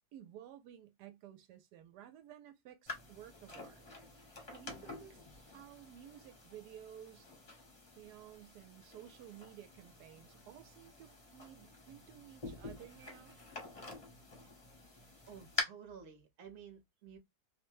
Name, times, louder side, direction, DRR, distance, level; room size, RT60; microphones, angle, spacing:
voice 1, 0.1-3.9 4.5-7.3 8.0-13.4, right 10 dB, 85° right, 1.1 m, -54 dB
sound 1, 2.9-15.6, left 3 dB, 30° left, 0.7 m, -47 dB
voice 2, 15.3-17.2, right 7 dB, 50° right, 1.0 m, -53 dB
2.7 x 2.1 x 3.0 m
omnidirectional pair, 1.7 m